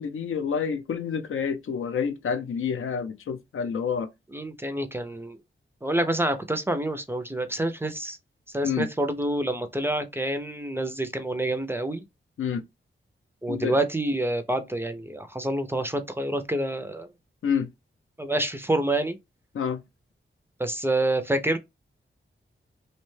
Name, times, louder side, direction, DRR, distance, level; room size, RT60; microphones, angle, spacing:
voice 1, 0.0-4.1 8.6-8.9 12.4-12.6 13.5-13.8 17.4-17.7 19.5-19.8, left 6 dB, 80° left, 0.5 m, -28 dB
voice 2, 4.3-5.4 5.8-8.2 8.5-12.0 13.4-17.1 18.2-19.2 20.6-21.6, right 1 dB, 10° right, 0.4 m, -27 dB
2.7 x 2.1 x 3.1 m
wide cardioid pair, 110°, 21 cm